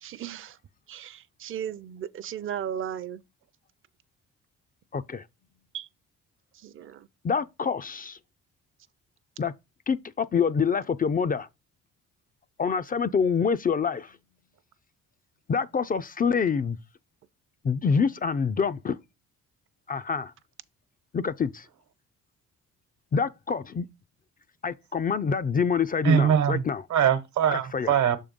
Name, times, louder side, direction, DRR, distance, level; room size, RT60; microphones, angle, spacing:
voice 1, 0.0-0.6 0.9-3.2 5.7-5.9 6.5-7.1, right 9 dB, 45° right, 0.5 m, -36 dB
voice 2, 4.9-5.2 7.2-8.2 9.4-9.5 9.9-11.5 12.6-14.1 15.5-16.8 17.6-19.0 19.9-20.3 21.1-21.7 23.1-23.8 24.6-26.8 27.5-28.0, left 6 dB, 30° left, 0.4 m, -26 dB
voice 3, 26.0-26.6 26.9-28.2, right 8 dB, 70° right, 1.1 m, -22 dB
6.6 x 3.7 x 5.2 m
cardioid pair, 90°, 30 cm